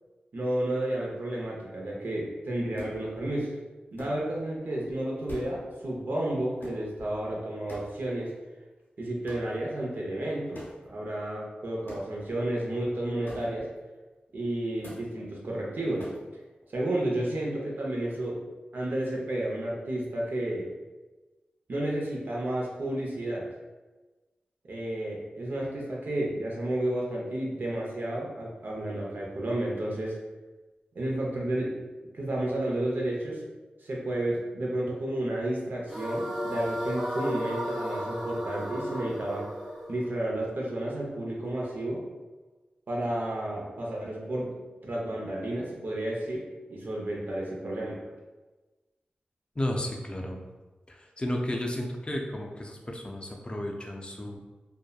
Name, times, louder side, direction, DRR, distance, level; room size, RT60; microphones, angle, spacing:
voice 1, 0.3-3.5 3.9-8.3 9.0-13.7 14.3-16.1 16.7-18.4 18.7-20.7 21.7-23.5 24.7-30.2 30.9-31.8 32.1-33.4 33.8-39.5 39.9-42.0 42.9-44.5 44.8-46.4 46.7-48.0, right 1 dB, 65° right, -3 dB, 0.6 m, -31 dB
sound 1, 2.8-3.4 4.0-4.6 4.9-5.0 5.2-6.0 6.6-7.3 7.7-8.3 9.3-9.6 10.5-10.9 11.9-12.3 13.3-13.8 14.8-15.2 16.0-16.4, equal, 80° left, 0.8 m, -45 dB
sound 2, 35.9-41.1, equal, ahead, 0.8 m, -34 dB
voice 2, 49.6-50.4 50.9-54.4, left 1 dB, 30° left, 1 dB, 0.5 m, -33 dB
2.7 x 2.1 x 2.2 m, 1.2 s
cardioid pair, 40°, 4 cm